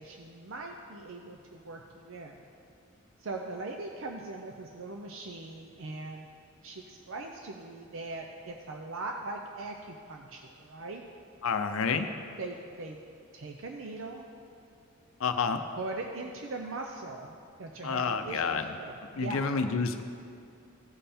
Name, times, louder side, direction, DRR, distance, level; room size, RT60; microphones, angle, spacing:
voice 1, 0.0-2.4 3.2-6.3 6.6-11.0 12.4-13.0 13.3-14.3 15.8-19.5, right 3 dB, 65° right, 2 dB, 0.6 m, -40 dB
voice 2, 11.4-12.1 15.2-15.6 17.8-18.6 19.2-20.0, left 5 dB, 75° left, 8 dB, 0.5 m, -29 dB
15.5 x 5.5 x 4.3 m, 2.5 s
head